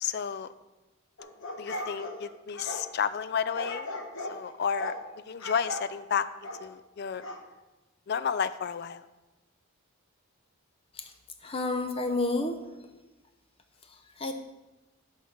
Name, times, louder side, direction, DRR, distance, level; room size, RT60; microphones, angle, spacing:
voice 1, 0.0-0.5 1.6-3.9 4.3-4.9 5.3-7.2 8.1-9.1 12.0-12.1, left 7 dB, 50° left, 13 dB, 0.3 m, -31 dB
sound 1, 1.2-2.9 3.5-4.4 4.8-5.0 5.4-5.9 6.4-6.7 7.2-7.4, left 2 dB, 65° left, 1.0 m, -37 dB
voice 2, 11.4-13.0 13.8-14.3, left 2 dB, 25° left, 6 dB, 0.7 m, -31 dB
11.0 x 4.0 x 6.0 m, 1.1 s
head